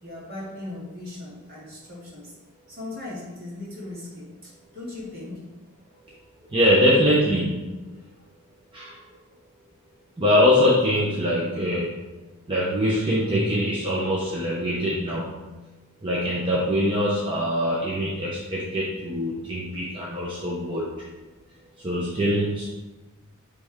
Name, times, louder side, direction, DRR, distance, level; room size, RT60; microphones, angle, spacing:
voice 1, 0.0-2.3 2.7-5.4, left 2 dB, 45° right, -5 dB, 2.1 m, -38 dB
voice 2, 6.5-7.7 8.7-9.0 10.2-12.0 12.5-15.3 16.0-21.1 21.8-22.6, equal, 20° right, -7 dB, 0.9 m, -23 dB
9.6 x 3.5 x 3.6 m, 1.2 s
head